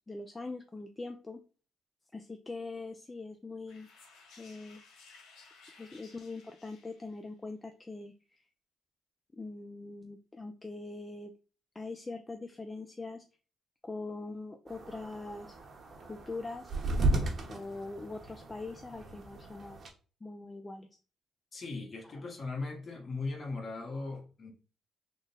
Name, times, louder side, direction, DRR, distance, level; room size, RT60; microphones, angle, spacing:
voice 1, 0.1-1.4 2.1-3.9 4.4-4.8 5.8-8.4 9.3-11.3 11.7-13.2 13.8-15.6 16.1-16.7 17.5-19.8 20.2-20.9 22.0-22.2, left 3 dB, 20° left, 0.4 m, -42 dB
sound 1, 3.7-7.3, left 4 dB, 85° left, 1.1 m, -57 dB
sound 2, 14.7-19.9, right 2 dB, 45° right, 1.0 m, -35 dB
voice 2, 21.5-24.5, left 3 dB, 40° left, 1.1 m, -38 dB
3.6 x 2.1 x 3.9 m
cardioid pair, 90°, 0 cm